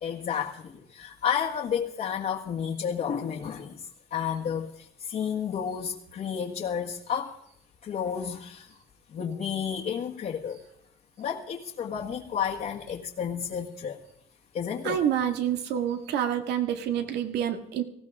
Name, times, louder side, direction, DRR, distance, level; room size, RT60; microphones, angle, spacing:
voice 1, 0.0-7.4 7.8-8.8 9.1-10.6 11.2-14.0 14.5-15.0, left 8 dB, 55° left, -2 dB, 1.7 m, -31 dB
voice 2, 14.8-17.8, right 9 dB, 80° right, 6 dB, 2.1 m, -27 dB
19.0 x 16.5 x 3.7 m, 0.72 s
cardioid pair, 110°, 17 cm